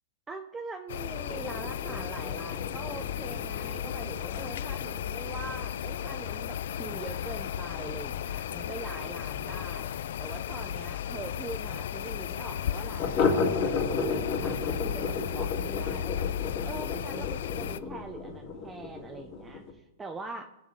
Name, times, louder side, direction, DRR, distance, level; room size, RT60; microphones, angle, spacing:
voice 1, 0.3-9.9 10.2-16.3 16.7-20.4, right 3 dB, 10° right, 4 dB, 0.7 m, -42 dB
sound 1, 0.9-17.8, left 10 dB, 75° left, 0.4 m, -35 dB
sound 2, 1.2-10.5 10.8-10.9 11.2-11.3 11.7-11.8 13.0-19.7, left 4 dB, 40° left, 2.5 m, -34 dB
20.0 x 7.2 x 4.0 m, 0.91 s
supercardioid pair, 150°, 0 cm